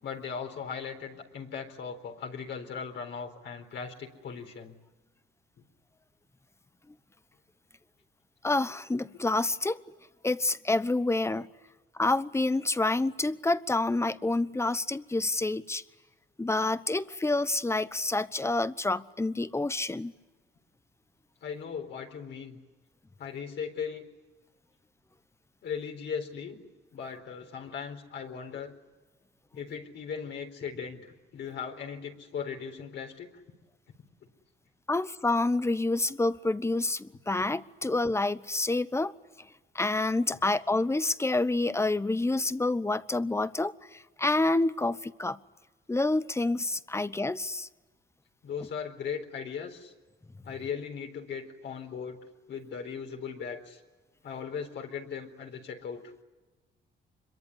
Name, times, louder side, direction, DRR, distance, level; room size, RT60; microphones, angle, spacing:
voice 1, 0.0-4.7 21.4-22.6 23.2-24.1 25.6-26.6 26.9-28.7 29.5-33.3 48.4-49.9 50.4-53.8 54.2-56.0, left 6 dB, 65° left, 3 dB, 4.2 m, -38 dB
voice 2, 8.4-9.8 10.2-11.5 12.0-15.8 16.4-20.1 34.9-39.1 39.7-43.7 44.2-45.4 45.9-47.7, left 2 dB, 15° left, 15 dB, 1.0 m, -28 dB
25.5 x 23.0 x 9.9 m, 1.2 s
cardioid pair, 90°, 20 cm